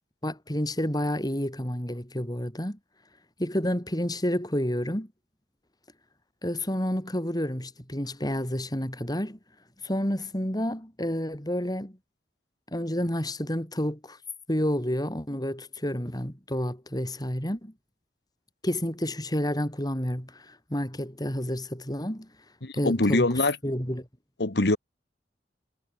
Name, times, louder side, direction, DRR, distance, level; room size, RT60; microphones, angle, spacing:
voice 1, 0.2-2.8 3.4-5.1 6.4-9.4 9.8-12.0 12.7-14.2 14.5-17.7 18.6-22.3 22.7-24.1, equal, 25° left, 6.9 m, -30 dB
voice 2, 22.6-23.6 24.4-24.8, left 2 dB, 65° left, 1.6 m, -23 dB
head